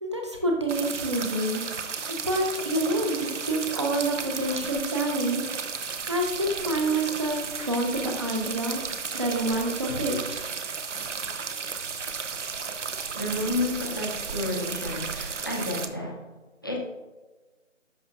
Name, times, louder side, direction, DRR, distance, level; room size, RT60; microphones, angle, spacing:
voice 1, 0.0-5.5 6.1-8.8 9.1-10.4, right 1 dB, 25° right, 2 dB, 0.7 m, -28 dB
sound 1, 0.7-15.9, right 5 dB, 70° right, 0.8 m, -34 dB
voice 2, 10.9-11.4 13.1-16.2 16.6-16.8, left 1 dB, 20° left, 0 dB, 0.6 m, -31 dB
10.5 x 6.2 x 2.4 m, 1.2 s
figure-of-eight pair, 165°, 37 cm